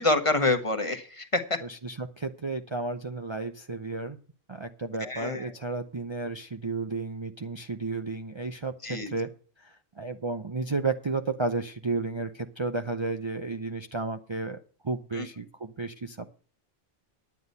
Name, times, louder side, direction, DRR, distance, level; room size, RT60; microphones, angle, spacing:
voice 1, 0.0-1.4 5.0-5.4 8.8-9.1, left 2 dB, 30° left, 8 dB, 1.4 m, -26 dB
voice 2, 1.6-4.2 4.5-9.3 9.6-14.6 14.8-16.3, right 3 dB, 30° right, 6 dB, 0.7 m, -32 dB
10.0 x 9.6 x 5.4 m, 0.42 s
omnidirectional pair, 1.1 m